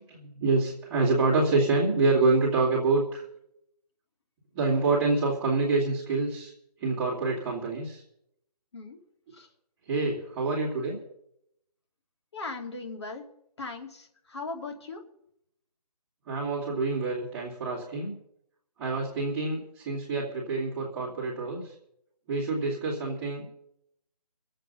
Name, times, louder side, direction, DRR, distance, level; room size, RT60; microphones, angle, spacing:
voice 1, 0.0-3.2 4.5-6.5 6.8-8.0 9.9-11.0 16.3-18.1 18.8-21.7 22.3-23.5, right 3 dB, 10° right, -8 dB, 2.2 m, -27 dB
voice 2, 12.3-13.2 13.6-15.0, left 3 dB, 45° left, 3 dB, 2.4 m, -38 dB
22.0 x 7.8 x 5.4 m, 0.76 s
hypercardioid pair, 170°, 20 cm